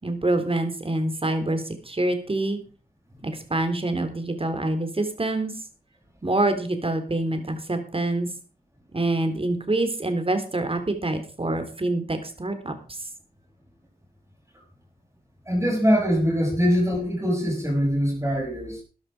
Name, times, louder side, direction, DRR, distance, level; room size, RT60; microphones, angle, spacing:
voice 1, 0.0-2.6 3.2-5.5 6.2-8.3 8.9-12.7, right 2 dB, 35° right, 7 dB, 3.7 m, -26 dB
voice 2, 15.5-18.8, equal, 15° right, -1 dB, 6.5 m, -23 dB
14.0 x 11.0 x 5.0 m, 0.36 s
cardioid pair, 60°, 16 cm